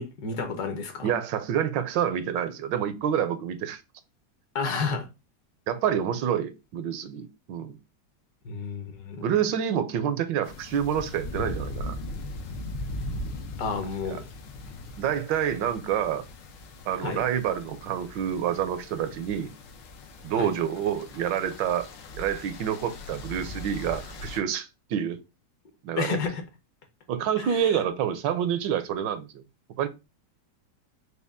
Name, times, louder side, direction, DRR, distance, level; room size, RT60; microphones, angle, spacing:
voice 1, 0.0-1.1 4.5-5.1 8.4-9.3 13.6-14.2 17.0-17.2 20.4-20.5 26.0-26.4 27.4-27.7, left 5 dB, 65° left, 1.3 m, -31 dB
voice 2, 1.0-3.8 5.7-7.8 9.2-12.0 15.0-16.2 16.9-19.5 20.2-21.9 22.2-25.2 25.8-26.2 27.1-29.4 29.8-29.9, right 9 dB, 85° right, 1.3 m, -28 dB
sound 1, 10.4-24.4, left 1 dB, 85° left, 1.4 m, -39 dB
5.1 x 2.3 x 3.5 m
omnidirectional pair, 1.9 m